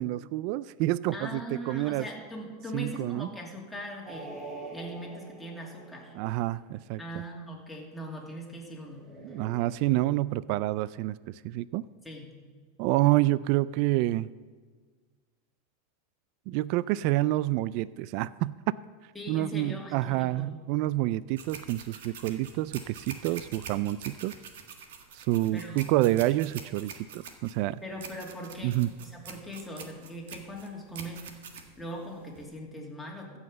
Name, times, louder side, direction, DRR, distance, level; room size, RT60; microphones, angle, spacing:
voice 1, 0.0-2.0 2.7-3.3 6.1-7.0 9.2-11.2 11.4-11.8 12.8-14.3 16.5-18.6 19.3-24.3 25.1-27.8 28.6-28.9, right 16 dB, 55° right, 18 dB, 0.3 m, -28 dB
voice 2, 1.1-4.3 4.7-6.2 7.0-9.1 12.0-12.3 19.1-20.5 25.5-26.1 27.8-31.2 31.8-33.4, equal, 5° left, -2 dB, 2.6 m, -40 dB
sound 1, 4.1-6.7 8.8-9.5, right 2 dB, 20° right, 2.9 m, -44 dB
sound 2, 21.3-32.5, right 6 dB, 80° right, 1.6 m, -45 dB
15.0 x 5.7 x 7.7 m, 1.5 s
supercardioid pair, 135°, 0 cm